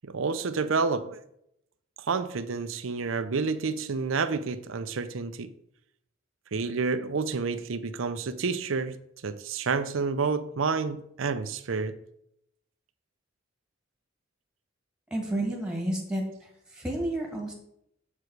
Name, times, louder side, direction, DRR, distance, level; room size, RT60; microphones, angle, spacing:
voice 1, 0.0-1.2 2.1-5.5 6.5-9.0 9.2-12.0, right 4 dB, 70° right, 0.6 m, -29 dB
voice 2, 15.1-17.5, right 1 dB, 5° right, 1.8 m, -31 dB
7.7 x 4.9 x 4.7 m
head